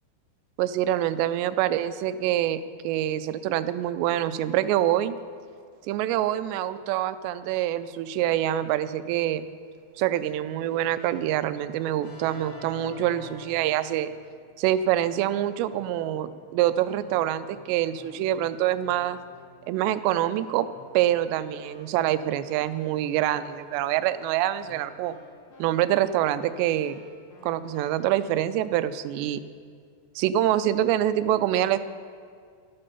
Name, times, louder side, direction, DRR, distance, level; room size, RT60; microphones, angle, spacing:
voice 1, 0.6-5.2 5.9-9.5 10.0-14.1 14.6-19.2 19.7-20.7 20.9-25.2 25.6-27.0 27.4-29.4 30.2-31.8, right 12 dB, 90° right, 13 dB, 2.8 m, -25 dB
Keyboard (musical), 10.7-14.3 14.8-15.3 15.7-28.2, left 2 dB, 90° left, 4.6 m, -51 dB
13.0 x 12.0 x 5.6 m, 2.2 s
omnidirectional pair, 4.9 m